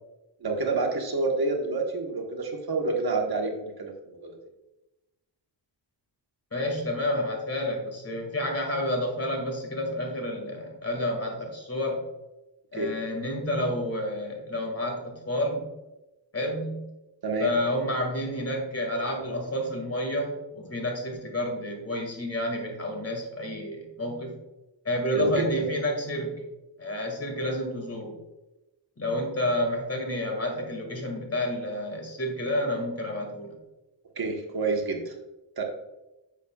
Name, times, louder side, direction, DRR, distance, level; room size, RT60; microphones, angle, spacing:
voice 1, 0.4-3.5 3.8-4.4 12.7-12.9 17.2-17.5 25.1-25.4 34.2-35.1 35.6-35.7, right 3 dB, 55° right, 1 dB, 1.3 m, -28 dB
voice 2, 6.5-12.0 12.7-15.7 16.3-16.9 17.4-24.4 24.8-26.4 26.8-28.2 29.0-33.6, left 1 dB, 30° left, 2 dB, 2.0 m, -30 dB
9.9 x 7.2 x 2.3 m, 1.0 s
wide cardioid pair, 120°, 45 cm